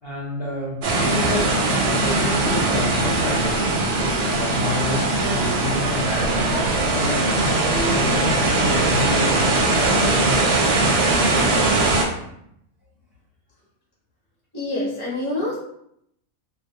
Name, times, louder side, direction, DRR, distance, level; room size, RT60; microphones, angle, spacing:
voice 1, 0.0-10.6, left 1 dB, 50° left, -8 dB, 0.9 m, -29 dB
sound 1, 0.8-12.0, right 2 dB, 65° right, 0.8 m, -20 dB
voice 2, 14.5-15.6, left 2 dB, 20° left, -7 dB, 0.8 m, -26 dB
2.4 x 2.2 x 2.6 m, 0.74 s
omnidirectional pair, 1.5 m